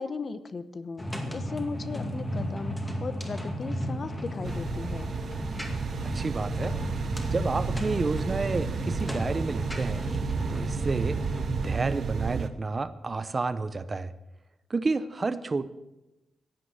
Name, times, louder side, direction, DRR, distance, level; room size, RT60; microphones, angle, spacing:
voice 1, 0.0-5.1, left 4 dB, 35° left, 13 dB, 0.9 m, -37 dB
sound 1, 1.0-11.7, equal, 10° left, 2.2 m, -34 dB
sound 2, 4.4-12.5, right 6 dB, 55° right, 1.0 m, -32 dB
voice 2, 6.1-6.8 7.3-10.1 10.5-11.2 11.6-14.1 14.7-15.7, right 3 dB, 30° right, 14 dB, 0.7 m, -30 dB
15.5 x 9.2 x 7.9 m, 0.96 s
wide cardioid pair, 130°, 0 cm